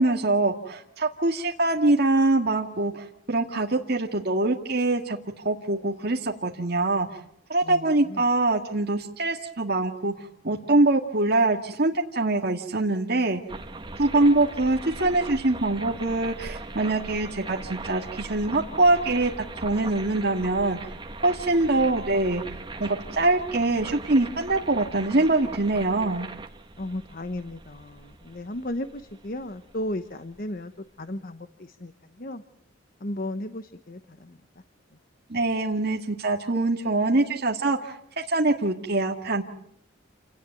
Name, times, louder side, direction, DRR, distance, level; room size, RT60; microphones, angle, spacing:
voice 1, 0.0-7.2 7.5-10.1 10.4-13.4 14.0-20.9 21.2-22.4 22.8-26.3 35.3-39.4, right 2 dB, 55° right, 1 dB, 2.0 m, -24 dB
sound 1, 13.5-30.4, right 2 dB, 25° right, 1.6 m, -40 dB
voice 2, 26.8-30.7 31.0-31.5 31.8-31.9 32.2-32.4 33.0-34.3, left 1 dB, 45° left, 9 dB, 1.1 m, -34 dB
28.5 x 18.5 x 9.3 m, 0.70 s
head